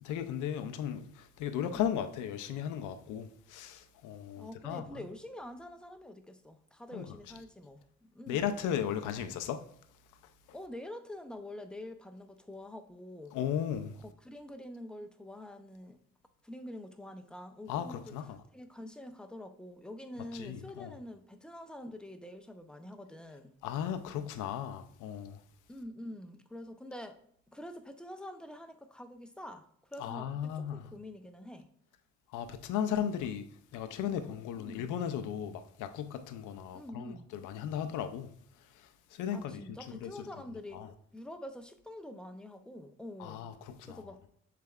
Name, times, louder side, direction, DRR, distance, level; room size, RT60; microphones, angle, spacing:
voice 1, 0.0-5.0 6.9-7.2 8.3-9.7 13.3-14.0 17.7-18.4 20.3-21.0 23.6-25.4 30.0-30.9 32.3-33.5 33.7-40.3 40.7-40.9 43.2-44.1, left 9 dB, 85° left, 0.5 m, -36 dB
voice 2, 4.4-8.5 10.5-13.4 14.0-16.0 16.4-18.0 18.5-23.5 25.7-27.2 27.5-31.7 34.6-34.9 36.7-37.3 39.3-40.8 41.1-43.4 43.9-44.2, left 1 dB, 5° left, 0.5 m, -46 dB
6.7 x 3.3 x 2.3 m
cardioid pair, 90°, 30 cm